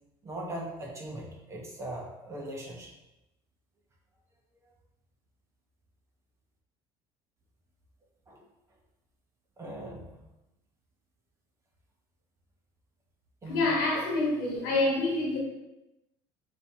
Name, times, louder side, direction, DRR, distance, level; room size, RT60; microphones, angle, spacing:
voice 1, 0.2-2.9 8.3-8.4 9.6-10.2 13.4-14.0, right 1 dB, 25° right, -1 dB, 1.1 m, -40 dB
voice 2, 13.5-15.4, left 2 dB, 90° left, -2 dB, 1.3 m, -27 dB
5.3 x 3.0 x 2.8 m, 0.94 s
supercardioid pair, 105°, 12 cm